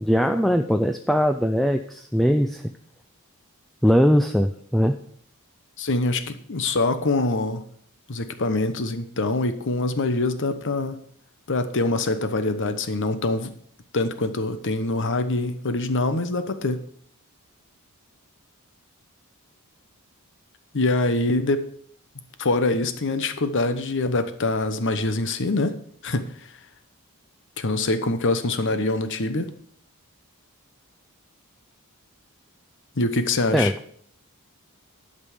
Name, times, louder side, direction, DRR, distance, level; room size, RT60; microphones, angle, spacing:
voice 1, 0.0-2.7 3.8-5.0 33.5-33.7, equal, ahead, 0.4 m, -20 dB
voice 2, 5.8-7.7 8.1-11.0 11.5-13.5 13.9-16.8 20.7-21.7 22.4-26.3 27.6-29.5 33.0-33.7, left 2 dB, 55° left, 1.0 m, -24 dB
12.0 x 5.4 x 7.1 m
head